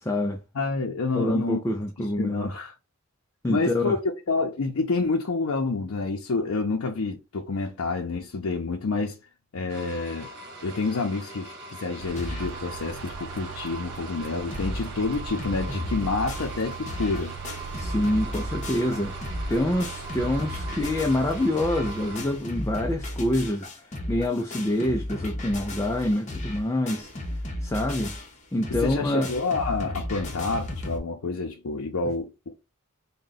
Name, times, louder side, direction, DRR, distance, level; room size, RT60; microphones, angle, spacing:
voice 1, 0.0-0.4 1.1-2.5 3.4-4.0 17.8-19.2 19.5-23.7 24.1-27.1 27.6-28.2 28.5-29.3, left 1 dB, 15° left, 0.3 m, -26 dB
voice 2, 0.5-1.6 2.0-2.7 3.5-9.2 9.5-10.3 10.6-17.3 28.7-32.5, left 3 dB, 75° left, 0.5 m, -28 dB
sound 1, 9.7-22.2, right 3 dB, 50° right, 1.2 m, -41 dB
sound 2, 12.0-22.4, right 5 dB, 75° right, 0.6 m, -40 dB
sound 3, 12.2-12.6 13.1-13.2 13.4-13.5 14.0-14.1 14.2-14.9 15.1-31.0, left 1 dB, 35° left, 0.8 m, -35 dB
3.7 x 2.2 x 3.9 m
head